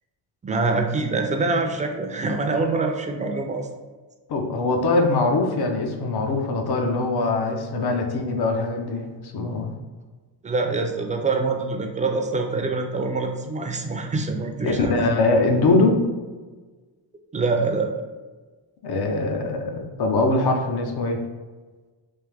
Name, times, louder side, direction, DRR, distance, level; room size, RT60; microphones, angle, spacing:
voice 1, 0.4-3.7 10.4-14.9 17.3-17.9, right 3 dB, 15° right, 3 dB, 0.5 m, -25 dB
voice 2, 4.3-9.7 14.6-16.0 18.8-21.2, left 2 dB, 55° left, 3 dB, 0.8 m, -22 dB
3.5 x 2.7 x 3.4 m, 1.3 s
cardioid pair, 85°, 47 cm